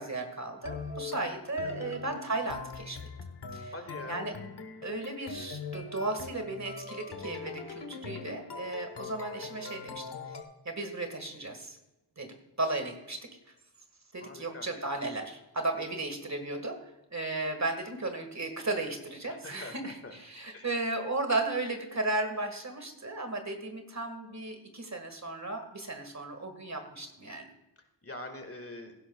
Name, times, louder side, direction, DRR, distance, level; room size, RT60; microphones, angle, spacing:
voice 1, 0.0-3.0 3.5-3.7 4.1-4.3 4.8-10.2 10.7-11.8 12.2-12.3 12.6-13.2 14.1-16.8 17.1-27.5, right 2 dB, 40° right, 5 dB, 1.9 m, -35 dB
sound 1, 0.6-10.4, left 4 dB, 60° left, 1.3 m, -42 dB
voice 2, 1.6-2.0 3.7-4.3 14.2-14.7 19.3-20.2 20.5-20.8 28.0-28.9, left 2 dB, 30° left, 5 dB, 1.9 m, -44 dB
16.0 x 11.5 x 2.4 m, 0.95 s
cardioid pair, 50°, 44 cm